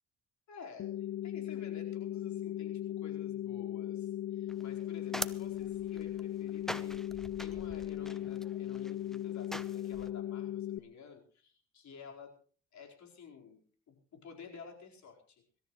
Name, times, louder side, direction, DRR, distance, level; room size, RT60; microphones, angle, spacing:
voice 1, 0.5-12.3 12.7-13.6 13.9-15.6, left 5 dB, 70° left, 1 dB, 4.7 m, -52 dB
sound 1, 0.8-10.8, left 12 dB, 50° left, 0.6 m, -38 dB
sound 2, 4.5-10.1, equal, ahead, 0.9 m, -44 dB
25.0 x 13.5 x 3.2 m, 0.42 s
cardioid pair, 90°, 30 cm